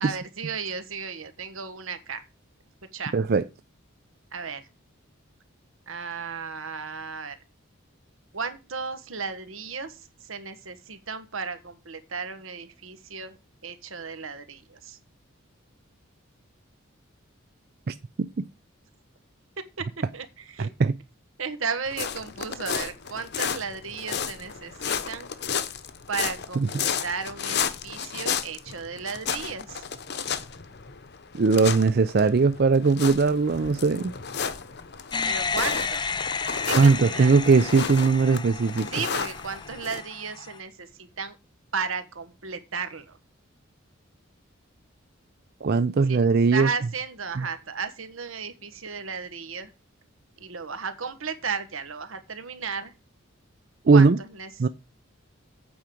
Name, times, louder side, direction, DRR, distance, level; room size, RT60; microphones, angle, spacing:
voice 1, 0.0-2.2 2.9-3.1 4.3-4.7 5.9-7.4 8.3-13.4 13.6-15.0 19.8-19.9 20.1-20.7 21.4-25.3 26.1-29.8 35.2-36.1 36.6-37.4 38.9-41.4 41.7-43.2 46.1-46.2 46.5-49.7 50.4-52.9 53.9-54.5, right 5 dB, 80° right, 1.4 m, -34 dB
voice 2, 3.1-3.4 17.9-18.3 20.6-20.9 26.6-26.7 31.3-34.1 36.7-38.9 45.6-46.7 47.4-47.5 53.9-54.2 54.6-54.7, right 4 dB, 50° right, 0.4 m, -20 dB
sound 1, 21.9-40.0, left 7 dB, 55° left, 0.9 m, -33 dB
sound 2, 35.1-40.6, left 5 dB, 20° left, 0.4 m, -32 dB
8.6 x 5.0 x 7.6 m
head